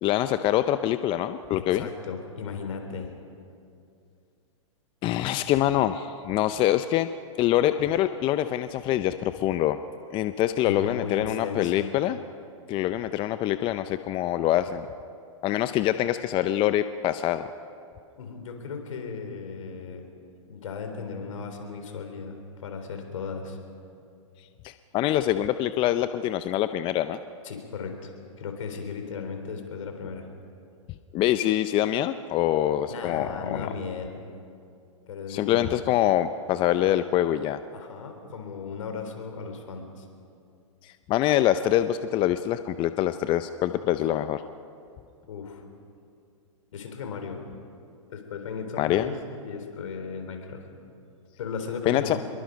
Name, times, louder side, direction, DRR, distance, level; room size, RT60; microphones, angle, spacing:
voice 1, 0.0-1.9 5.0-7.1 7.4-9.8 10.1-12.2 12.7-14.9 15.4-17.5 24.6-27.2 31.1-33.7 35.3-37.6 40.8-44.4 48.8-49.1 51.9-52.2, left 12 dB, 30° left, 11 dB, 0.6 m, -25 dB
voice 2, 1.6-3.1 10.6-11.9 18.2-20.0 20.5-23.6 27.4-28.1 28.4-30.3 32.9-34.2 35.1-35.8 37.7-40.1 45.3-45.6 46.7-47.4 48.1-50.6 51.4-52.2, left 5 dB, 70° left, 5 dB, 3.9 m, -36 dB
25.5 x 22.5 x 5.2 m, 2.4 s
hypercardioid pair, 120°, 17 cm